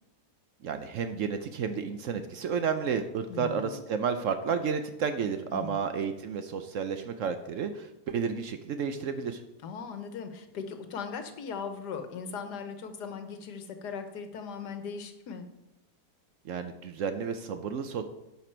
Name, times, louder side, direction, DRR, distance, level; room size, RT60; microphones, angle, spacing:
voice 1, 0.6-9.4 16.4-18.0, right 6 dB, 65° right, 8 dB, 0.8 m, -31 dB
voice 2, 3.3-3.8 5.5-5.8 9.6-15.5, left 5 dB, 90° left, 8 dB, 1.5 m, -39 dB
11.0 x 5.9 x 4.4 m, 0.93 s
omnidirectional pair, 1.7 m